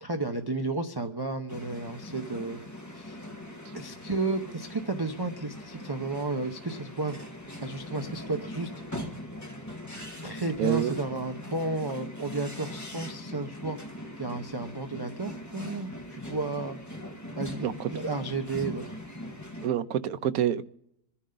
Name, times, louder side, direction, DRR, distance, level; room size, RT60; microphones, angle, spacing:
voice 1, 0.0-2.6 2.9-3.2 3.7-7.2 7.6-8.7 10.2-13.8 14.2-16.8 17.4-19.0, right 2 dB, 25° right, 5 dB, 0.6 m, -32 dB
sound 1, 1.5-19.7, left 1 dB, 10° left, 1.7 m, -41 dB
voice 2, 10.6-11.0 17.6-17.9 19.6-20.6, right 10 dB, 65° right, 12 dB, 1.1 m, -27 dB
26.5 x 10.0 x 3.9 m, 0.77 s
omnidirectional pair, 1.7 m